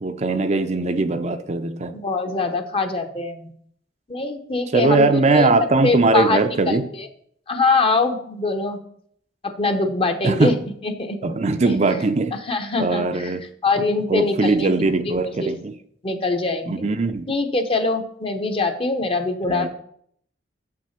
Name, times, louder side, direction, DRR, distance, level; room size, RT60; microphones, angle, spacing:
voice 1, 0.0-1.9 4.7-6.9 10.2-10.6 11.2-12.4 12.8-13.4 14.1-15.7 16.7-17.2 19.4-19.7, right 3 dB, 40° right, 0.6 m, -20 dB
voice 2, 1.9-3.5 4.1-5.5 5.8-7.1 7.5-8.8 9.4-10.5 10.8-11.3 12.5-13.3 13.6-14.7 15.4-15.5 16.0-16.7 17.3-19.7, left 3 dB, 30° left, 1.0 m, -23 dB
7.6 x 6.1 x 5.8 m
head